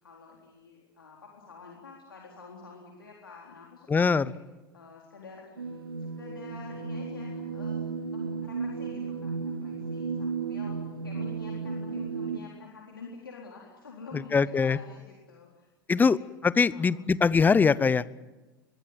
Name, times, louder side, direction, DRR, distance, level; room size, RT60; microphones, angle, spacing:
voice 1, 0.0-4.4 4.7-7.8 8.1-15.7 15.9-16.2 16.6-17.0, left 4 dB, 75° left, -1 dB, 4.0 m, -48 dB
voice 2, 3.9-4.3 14.3-14.8 15.9-16.2 16.4-18.3, left 5 dB, 15° left, 20 dB, 0.7 m, -22 dB
sound 1, 5.6-12.4, right 5 dB, 80° right, 1.3 m, -34 dB
23.0 x 22.0 x 9.2 m, 1.2 s
figure-of-eight pair, 80°, 12 cm